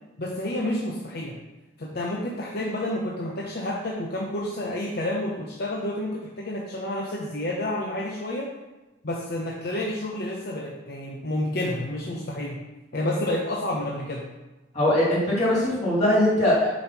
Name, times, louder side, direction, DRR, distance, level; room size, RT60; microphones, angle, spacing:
voice 1, 0.2-1.4 1.8-8.5 9.0-12.6 12.9-14.3, left 1 dB, 50° left, -3 dB, 0.8 m, -29 dB
voice 2, 14.7-16.7, left 1 dB, 35° left, -5 dB, 2.6 m, -21 dB
5.2 x 5.1 x 5.9 m, 1.1 s
head